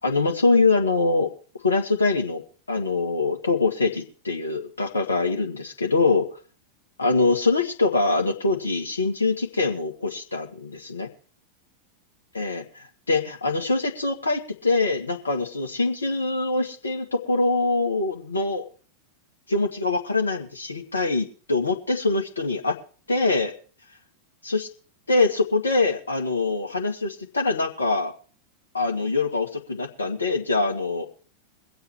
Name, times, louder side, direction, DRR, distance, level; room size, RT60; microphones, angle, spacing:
voice 1, 0.0-1.3 1.6-2.4 2.7-6.3 7.0-11.1 12.3-18.7 19.5-22.8 23.1-23.5 24.4-24.7 25.1-28.1 28.7-31.1, left 3 dB, 75° left, 2 dB, 1.9 m, -24 dB
22.5 x 8.0 x 4.7 m, 0.39 s
figure-of-eight pair, 90°, 0 cm